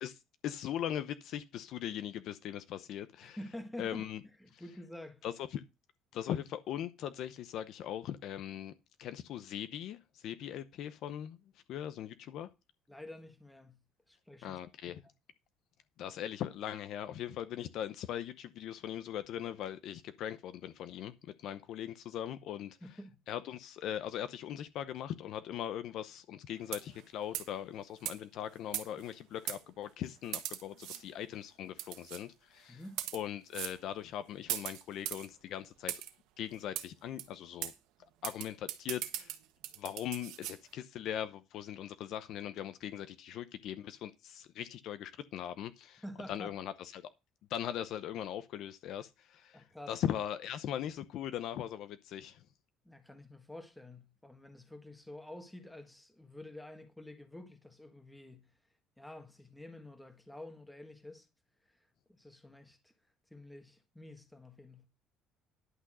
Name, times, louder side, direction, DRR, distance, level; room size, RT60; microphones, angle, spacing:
voice 1, 0.0-3.4 3.8-4.2 4.5-4.6 5.2-5.6 6.1-8.7 9.0-11.4 11.7-12.5 14.4-15.0 16.0-22.8 23.3-32.8 33.1-35.9 36.4-37.7 38.2-39.3 39.8-47.0 47.5-52.4, left 10 dB, 50° left, 0.7 m, -40 dB
voice 2, 3.2-4.1 4.4-5.2 12.9-13.8 14.1-14.6 14.9-15.0 22.8-23.2 32.7-33.0 46.0-46.5 49.5-49.9 52.8-58.5 59.0-61.3 62.1-62.9 63.3-64.9, left 1 dB, 5° left, 1.5 m, -49 dB
sound 1, 26.6-27.0 27.3-27.6 28.0-28.2 28.7-29.1 29.5-29.6 30.3-31.0 31.8-32.2 32.8-33.2 33.5-33.8 34.5-35.3 35.9-36.1 36.7-36.9 37.2-37.3 37.6-37.7 38.2-40.6, right 14 dB, 80° right, 1.4 m, -39 dB
11.0 x 6.2 x 6.2 m
cardioid pair, 180°, 0 cm